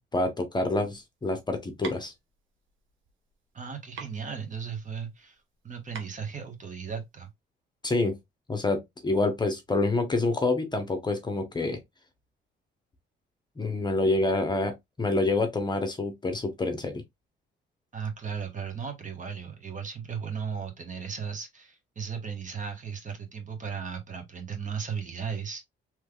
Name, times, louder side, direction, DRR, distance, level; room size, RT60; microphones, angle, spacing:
voice 1, 0.1-2.1 7.8-8.2 8.5-11.8 13.6-17.0, left 2 dB, 20° left, 0.9 m, -27 dB
sound 1, 0.8-7.3, right 6 dB, 80° right, 1.0 m, -46 dB
voice 2, 3.5-7.3 17.9-25.6, right 6 dB, 40° right, 1.2 m, -36 dB
3.3 x 3.2 x 2.3 m
cardioid pair, 90°, 20 cm